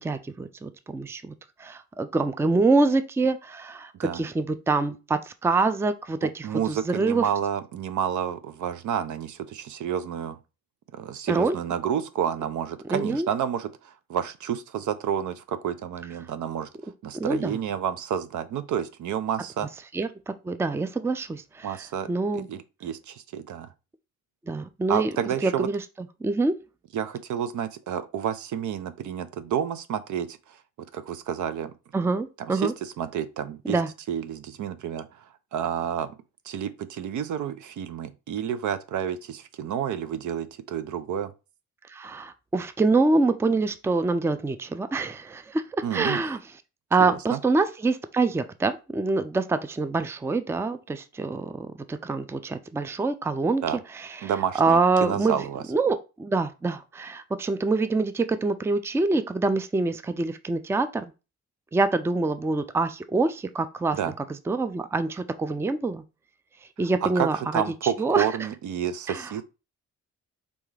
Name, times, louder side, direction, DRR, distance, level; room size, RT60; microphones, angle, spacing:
voice 1, 0.0-1.3 1.6-7.2 11.3-11.6 12.9-13.3 17.1-17.6 19.9-21.8 22.1-22.5 24.5-25.1 25.4-25.8 26.2-26.5 31.9-32.7 33.7-33.9 41.9-45.6 45.9-46.4 46.9-53.6 53.9-55.4 55.7-61.1 61.7-66.0 66.8-68.3 69.1-69.3, right 3 dB, 10° right, 0.4 m, -25 dB
voice 2, 6.2-10.4 10.9-16.7 17.0-19.7 21.6-22.1 22.3-23.7 24.9-25.7 26.9-30.4 30.9-31.7 32.4-33.8 34.1-35.1 35.5-36.1 36.5-41.3 45.8-46.2 47.0-47.4 53.6-53.8 54.2-55.6 63.9-64.1 67.0-69.4, right 9 dB, 70° right, 0.6 m, -30 dB
4.1 x 3.5 x 3.2 m
cardioid pair, 85°, 31 cm